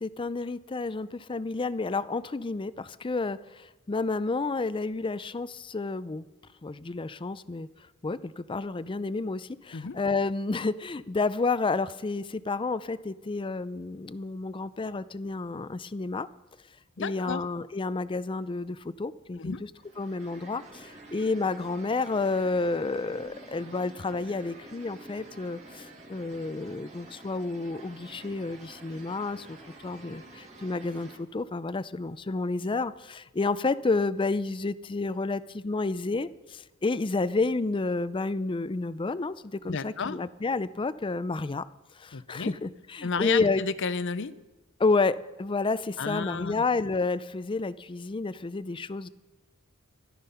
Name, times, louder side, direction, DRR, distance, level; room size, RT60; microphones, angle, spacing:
voice 1, 0.0-3.4 3.9-6.2 6.6-7.7 8.0-16.3 17.0-19.6 20.0-29.6 29.8-36.3 36.8-39.3 39.6-41.6 42.0-43.6 44.8-49.1, left 3 dB, 25° left, 16 dB, 0.4 m, -30 dB
voice 2, 17.0-17.4 19.4-19.6 39.7-40.2 42.1-42.5 43.0-44.3 46.0-46.6, left 5 dB, 60° left, 15 dB, 0.7 m, -32 dB
sound 1, 19.8-31.2, right 2 dB, 35° right, 2.0 m, -49 dB
14.0 x 12.5 x 5.6 m, 1.1 s
head